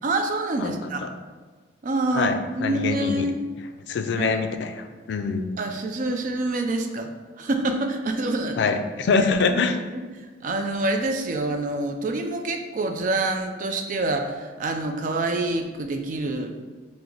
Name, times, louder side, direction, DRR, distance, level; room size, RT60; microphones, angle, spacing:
voice 1, 0.0-1.0 1.8-3.4 4.1-4.4 5.6-7.1 7.4-8.7 9.5-9.6 9.9-10.0 10.4-16.5, right 2 dB, 45° right, 5 dB, 0.3 m, -26 dB
voice 2, 0.6-1.1 2.1-3.3 3.9-5.5 8.6-9.8, left 4 dB, 70° left, 7 dB, 0.3 m, -24 dB
3.8 x 2.0 x 4.4 m, 1.4 s
head